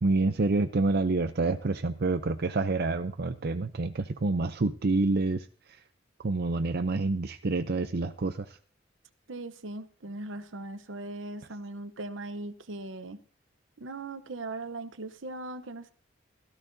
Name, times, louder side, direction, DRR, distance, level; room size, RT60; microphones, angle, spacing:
voice 1, 0.0-5.5 6.2-8.6, right 3 dB, 55° right, 9 dB, 0.6 m, -27 dB
voice 2, 9.3-13.2 13.8-15.9, right 2 dB, 75° right, 11 dB, 0.9 m, -39 dB
16.5 x 14.0 x 2.7 m, 0.42 s
head